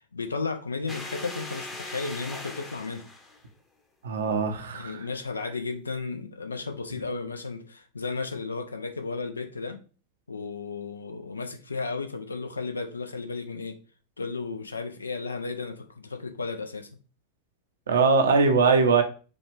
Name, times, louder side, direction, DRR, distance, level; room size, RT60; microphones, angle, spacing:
voice 1, 0.0-3.1 4.7-9.8 10.3-13.8 14.2-16.9, left 4 dB, 75° left, 8 dB, 0.5 m, -34 dB
sound 1, 0.9-3.4, left 2 dB, 15° left, 0.9 m, -39 dB
voice 2, 4.0-5.0 17.9-19.0, right 4 dB, 65° right, 6 dB, 0.7 m, -21 dB
5.0 x 2.4 x 3.3 m, 0.36 s
figure-of-eight pair, 90°, 0 cm